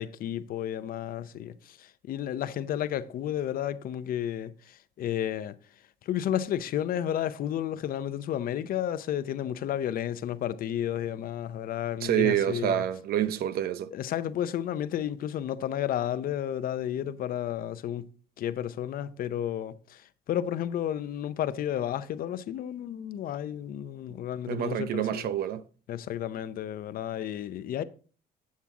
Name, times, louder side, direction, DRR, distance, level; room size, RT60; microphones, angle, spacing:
voice 1, 0.0-12.8 13.9-18.1 18.4-25.3 25.9-27.8, left 10 dB, 60° left, 0.6 m, -32 dB
voice 2, 12.0-13.9 24.5-25.6, right 11 dB, 65° right, 0.7 m, -27 dB
8.5 x 7.3 x 3.6 m
cardioid pair, 110°, 17 cm